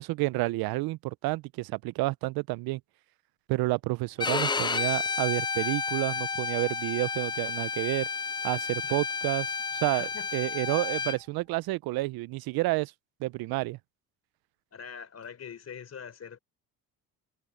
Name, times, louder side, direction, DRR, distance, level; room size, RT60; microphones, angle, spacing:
voice 1, 0.0-2.8 3.5-8.1 8.4-12.9 13.2-13.8, right 21 dB, 80° right, 0.6 m, -30 dB
Bowed string instrument, 4.2-11.2, left 5 dB, 15° left, 0.3 m, -31 dB
voice 2, 9.9-10.3 14.7-16.4, left 7 dB, 45° left, 3.9 m, -43 dB
cardioid pair, 90°, 36 cm